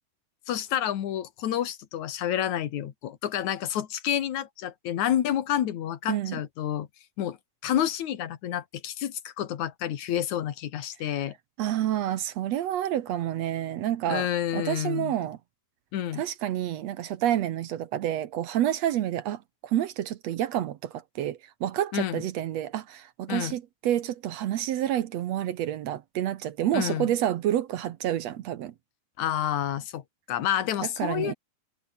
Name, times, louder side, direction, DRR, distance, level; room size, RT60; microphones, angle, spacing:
voice 1, 0.5-6.9 7.2-7.4 7.6-11.4 14.1-15.1 15.9-16.2 21.9-22.2 23.3-23.6 26.7-27.1 29.2-30.0 30.3-31.3, left 11 dB, 65° left, 2.9 m, -29 dB
voice 2, 6.1-6.4 11.6-14.3 14.5-15.4 16.1-28.7 31.0-31.3, right 12 dB, 65° right, 1.9 m, -29 dB
omnidirectional pair, 3.7 m